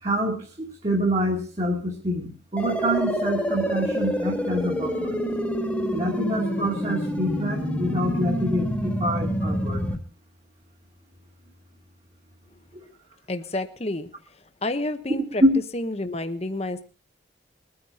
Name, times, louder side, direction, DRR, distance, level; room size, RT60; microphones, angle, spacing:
voice 1, 0.0-5.2 5.9-9.8 15.4-15.5, equal, 35° right, -1 dB, 2.3 m, -26 dB
sound 1, 2.6-10.0, equal, 5° left, 1.8 m, -27 dB
voice 2, 13.3-14.1 14.6-15.4 15.7-16.8, left 2 dB, 35° left, 10 dB, 1.0 m, -29 dB
22.0 x 9.7 x 4.3 m, 0.37 s
head